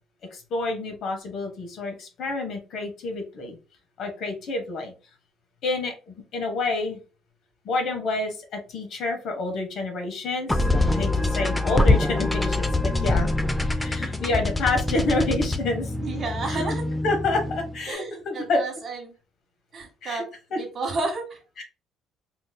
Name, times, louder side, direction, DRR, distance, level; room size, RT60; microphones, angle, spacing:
voice 1, 0.3-3.6 4.0-4.9 5.6-7.0 7.6-10.6 10.9-13.3 13.8-15.9 16.5-16.8 17.0-18.6 20.0-20.2 20.5-20.6 21.6-21.7, left 2 dB, 55° left, 4 dB, 0.9 m, -28 dB
sound 1, 10.5-17.8, left 2 dB, 10° left, 0.3 m, -24 dB
voice 2, 16.0-16.8 17.9-19.1 19.7-20.2 20.6-21.4, right 3 dB, 40° right, 2 dB, 1.1 m, -31 dB
3.8 x 2.5 x 2.2 m, 0.33 s
cardioid pair, 135°, 0 cm